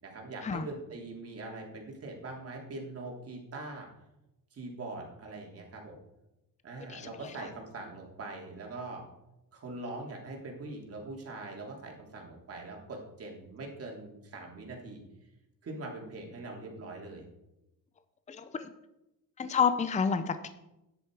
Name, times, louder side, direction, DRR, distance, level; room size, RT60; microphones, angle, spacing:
voice 1, 0.0-3.9 4.5-6.0 6.6-9.0 9.5-15.0 15.6-17.3, right 2 dB, 40° right, 0 dB, 3.2 m, -42 dB
voice 2, 18.3-18.7 19.4-20.5, left 6 dB, 20° left, 11 dB, 0.6 m, -29 dB
13.0 x 10.0 x 4.8 m, 0.91 s
cardioid pair, 140°, 36 cm